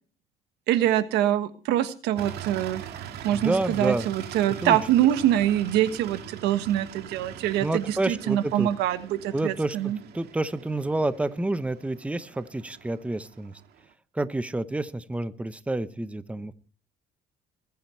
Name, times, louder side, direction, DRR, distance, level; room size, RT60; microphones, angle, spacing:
voice 1, 0.7-10.0, right 12 dB, 90° right, 11 dB, 1.4 m, -25 dB
sound 1, 2.2-13.9, right 9 dB, 70° right, 2.0 m, -42 dB
voice 2, 3.3-4.1 4.6-4.8 7.6-8.7 9.3-13.6 14.1-16.5, right 2 dB, 5° right, 13 dB, 0.9 m, -29 dB
21.5 x 9.4 x 4.4 m, 0.38 s
cardioid pair, 110°, 17 cm